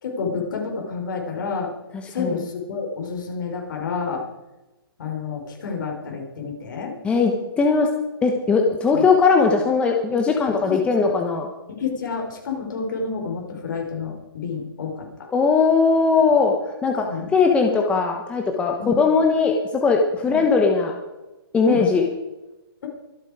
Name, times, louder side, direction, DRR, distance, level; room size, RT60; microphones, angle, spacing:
voice 1, 0.0-1.7 2.1-4.2 5.0-6.9 8.9-9.0 10.4-11.1 11.7-15.1 17.0-17.3 18.8-19.0 20.2-20.4 21.6-21.8, left 5 dB, 55° left, 2 dB, 4.3 m, -29 dB
voice 2, 7.6-7.9 8.2-11.5 15.3-16.5 16.8-17.1 17.3-20.9 21.5-22.0, left 4 dB, 10° left, 2 dB, 1.1 m, -19 dB
24.0 x 8.4 x 4.9 m, 1.0 s
hypercardioid pair, 155°, 13 cm